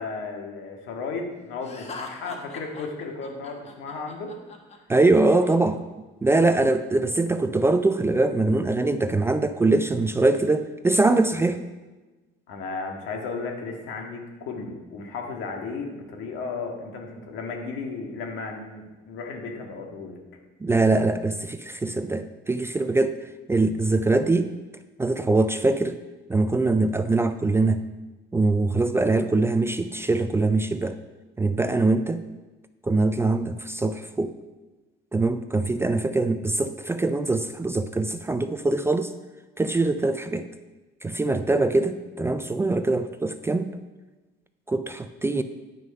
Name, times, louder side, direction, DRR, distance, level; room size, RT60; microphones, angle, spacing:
voice 1, 0.0-4.3 6.3-6.7 12.5-20.2 33.2-33.4, left 4 dB, 80° left, 2 dB, 1.8 m, -34 dB
Laughter, 1.6-5.5, left 3 dB, 30° left, 1.2 m, -42 dB
voice 2, 4.9-5.8 6.2-11.6 20.6-23.2 23.5-24.5 25.0-26.0 26.3-27.9 28.3-31.0 31.4-32.2 32.8-34.3 35.1-39.1 39.6-40.5 41.0-43.7 44.7-45.4, right 2 dB, 10° right, 10 dB, 0.3 m, -23 dB
9.3 x 6.3 x 5.3 m, 1.2 s
cardioid pair, 140°, 20 cm